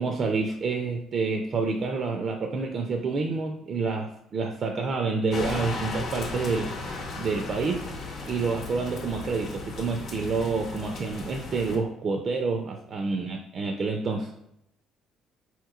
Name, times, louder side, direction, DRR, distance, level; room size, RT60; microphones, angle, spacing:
voice 1, 0.0-7.9 8.3-14.3, right 4 dB, 45° right, 2 dB, 0.4 m, -28 dB
sound 1, 5.3-11.8, left 3 dB, 55° left, 0.7 m, -36 dB
4.0 x 2.9 x 2.4 m, 0.79 s
cardioid pair, 115°, 0 cm